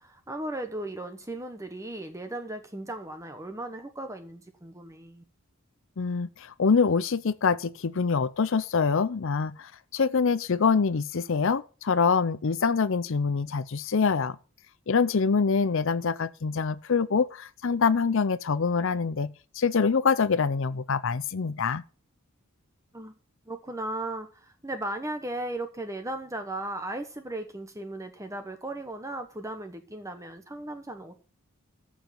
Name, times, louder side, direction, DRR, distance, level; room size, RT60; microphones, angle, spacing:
voice 1, 0.0-5.2 22.9-23.1 23.5-31.2, right 1 dB, 15° right, 1.1 m, -36 dB
voice 2, 6.0-14.4 14.9-21.8, left 5 dB, 60° left, 0.6 m, -25 dB
14.0 x 5.0 x 7.6 m
head